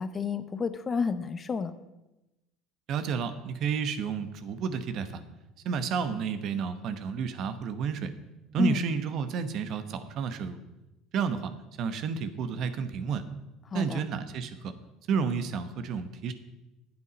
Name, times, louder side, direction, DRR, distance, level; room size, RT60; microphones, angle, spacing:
voice 1, 0.0-1.7 8.6-8.8 13.7-14.0, left 5 dB, 30° left, 12 dB, 0.8 m, -30 dB
voice 2, 2.9-5.2 5.6-8.1 8.5-10.6 11.1-11.5 11.8-13.2 13.7-14.7 15.1-16.3, right 6 dB, 55° right, 11 dB, 1.0 m, -31 dB
9.4 x 8.3 x 5.1 m, 0.99 s
hypercardioid pair, 75°, 0 cm